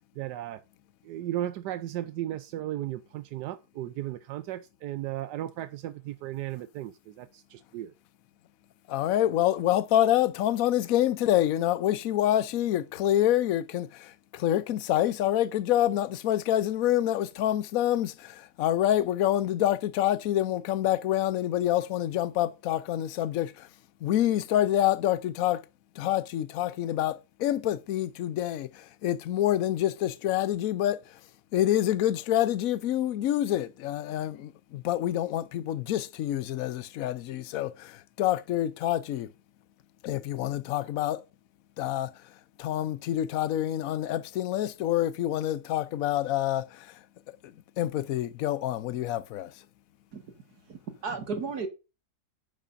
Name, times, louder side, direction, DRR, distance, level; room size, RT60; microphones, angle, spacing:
voice 1, 0.2-0.6 1.0-7.9, right 13 dB, 85° right, 1.2 m, -35 dB
voice 2, 8.9-23.7 24.0-25.6 26.0-31.2 31.5-39.3 40.0-41.2 41.8-42.1 42.6-47.0 47.4-49.5, left 12 dB, 65° left, 1.0 m, -27 dB
voice 3, 50.7-51.7, right 4 dB, 65° right, 2.2 m, -34 dB
10.5 x 9.1 x 2.6 m
omnidirectional pair, 1.8 m